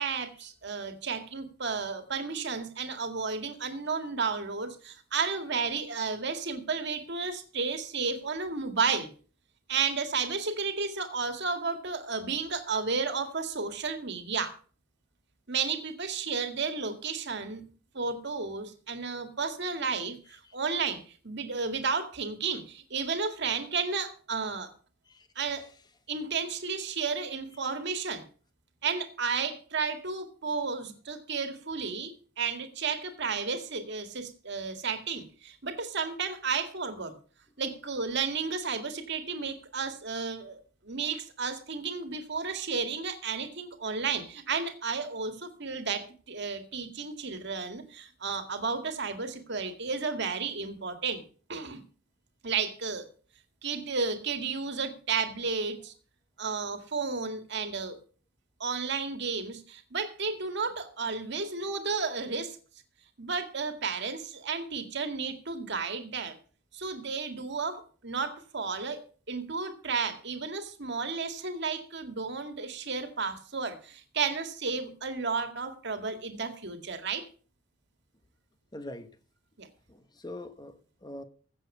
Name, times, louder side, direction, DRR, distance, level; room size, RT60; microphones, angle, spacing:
voice 1, 0.0-9.1 9.7-14.5 15.5-17.6 17.9-24.7 25.4-25.7 26.1-28.2 28.8-37.1 37.6-51.2 51.5-51.8 52.4-53.1 53.6-55.9 56.4-58.0 58.6-62.6 63.2-66.4 66.7-77.2 79.6-79.7, right 5 dB, 60° right, 1.9 m, -32 dB
voice 2, 78.7-79.1 79.9-81.2, left 1 dB, 20° left, 1.2 m, -43 dB
15.5 x 7.5 x 5.5 m
head